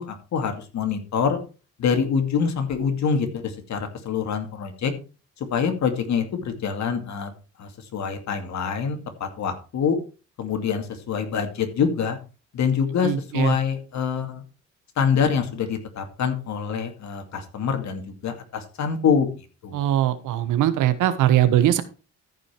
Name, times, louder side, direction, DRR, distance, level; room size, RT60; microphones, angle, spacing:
voice 1, 0.0-1.4 1.8-4.9 5.4-7.3 7.6-10.0 10.4-12.2 12.5-14.4 15.0-19.9, left 6 dB, 65° left, 6 dB, 2.4 m, -25 dB
voice 2, 13.0-13.5 19.7-21.8, right 12 dB, 90° right, 11 dB, 1.3 m, -21 dB
14.0 x 5.6 x 4.6 m, 0.33 s
cardioid pair, 90°, 30 cm